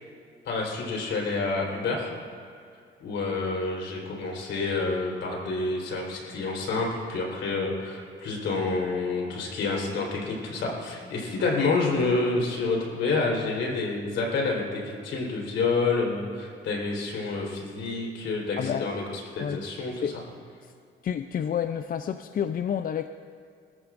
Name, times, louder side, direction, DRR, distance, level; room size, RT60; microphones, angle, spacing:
voice 1, 0.4-2.1 3.0-20.1, left 3 dB, 75° left, -1 dB, 4.0 m, -28 dB
voice 2, 18.6-19.0 19.4-19.6 20.0-20.2 21.0-23.1, left 8 dB, 45° left, 9 dB, 0.5 m, -29 dB
23.5 x 14.0 x 2.6 m, 2.3 s
cardioid pair, 90°, 20 cm